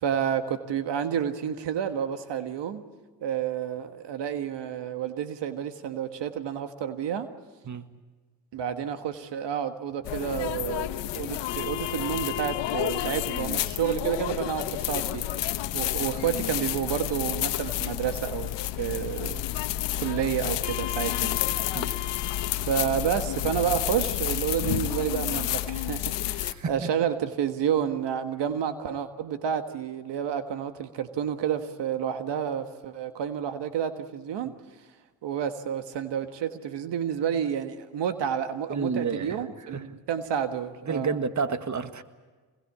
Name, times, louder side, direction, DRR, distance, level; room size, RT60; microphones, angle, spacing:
voice 1, 0.0-2.8 3.2-7.3 8.5-10.9 11.1-15.2 15.7-19.4 20.0-22.3 22.7-34.5 35.2-41.2, right 9 dB, 80° right, 9 dB, 1.6 m, -30 dB
sound 1, 10.0-26.5, left 13 dB, 90° left, 1.1 m, -30 dB
voice 2, 26.4-26.9 34.4-34.5 38.7-39.4 39.7-39.9 40.8-42.0, right 5 dB, 45° right, 10 dB, 1.8 m, -30 dB
25.5 x 21.0 x 8.6 m, 1.3 s
supercardioid pair, 55°, 42 cm